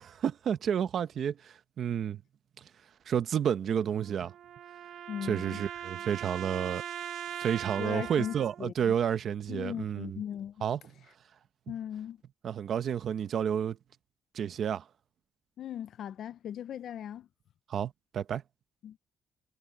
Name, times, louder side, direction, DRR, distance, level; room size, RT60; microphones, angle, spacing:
voice 1, 0.0-2.2 3.1-4.3 5.2-6.8 7.4-10.2 10.6-10.8 12.4-13.8 14.3-14.8 17.7-18.4, right 8 dB, 45° right, 0.9 m, -30 dB
sound 1, 3.9-8.6, right 10 dB, 60° right, 3.2 m, -40 dB
voice 2, 5.1-5.6 7.8-8.9 9.5-10.7 11.7-12.2 15.6-17.3 18.8-19.0, left 10 dB, 50° left, 0.5 m, -38 dB
cardioid pair, 180°, 0 cm